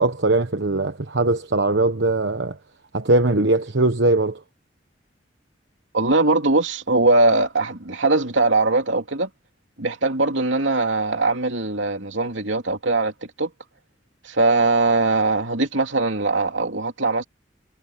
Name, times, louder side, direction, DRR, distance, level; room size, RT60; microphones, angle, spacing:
voice 1, 0.0-2.6 2.9-4.4, right 2 dB, 70° right, 1.2 m, -20 dB
voice 2, 5.9-9.3 9.8-13.1 13.4-13.5 14.2-17.2, right 3 dB, 90° right, 3.0 m, -21 dB
head